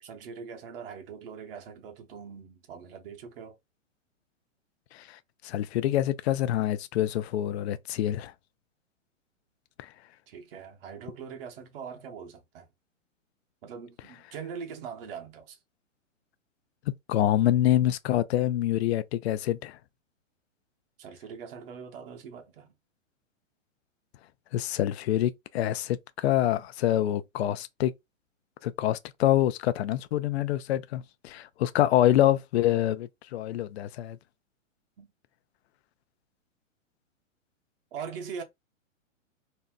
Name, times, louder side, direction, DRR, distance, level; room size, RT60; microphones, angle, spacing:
voice 1, 0.0-3.6 10.3-12.7 13.6-15.6 21.0-22.7 35.0-35.1 37.9-38.4, right 6 dB, 45° right, 0.9 m, -42 dB
voice 2, 4.9-8.3 9.8-9.9 17.1-19.8 24.5-27.9 28.6-34.2, left 12 dB, 55° left, 0.5 m, -26 dB
2.7 x 2.1 x 3.5 m
hypercardioid pair, 135°, 39 cm